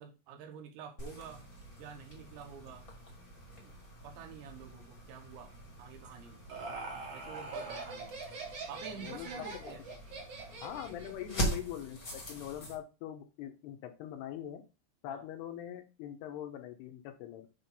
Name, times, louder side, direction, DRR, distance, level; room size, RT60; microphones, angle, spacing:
voice 1, 0.0-1.5 1.8-2.9 3.5-3.7 4.0-6.4 7.1-8.2 8.7-9.8 15.1-15.2, right 7 dB, 85° right, 3 dB, 3.7 m, -48 dB
sound 1, 1.0-12.8, right 1 dB, 40° left, 1.2 m, -43 dB
Laughter, 6.0-11.2, right 3 dB, 50° right, 2.1 m, -43 dB
voice 2, 9.0-9.8 10.6-14.6 15.0-17.5, left 11 dB, 75° left, 6 dB, 2.8 m, -43 dB
9.1 x 3.1 x 5.6 m, 0.30 s
omnidirectional pair, 5.1 m